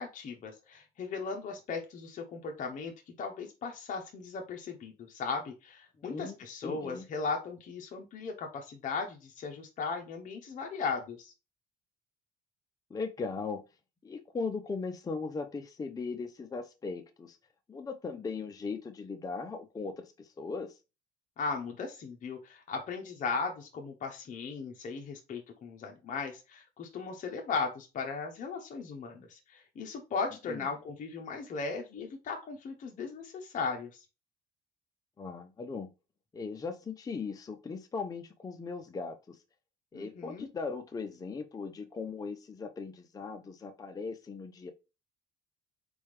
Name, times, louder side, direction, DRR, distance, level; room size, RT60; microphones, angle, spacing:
voice 1, 0.0-2.9 3.2-11.3 21.4-34.0 39.9-40.5, left 4 dB, 50° left, 0.9 m, -37 dB
voice 2, 6.1-7.0 12.9-13.6 14.0-17.4 17.7-20.8 30.5-30.7 35.2-35.9 36.3-39.4 39.9-44.7, left 4 dB, 20° left, 0.6 m, -38 dB
4.2 x 3.5 x 3.2 m
cardioid pair, 110°, 17 cm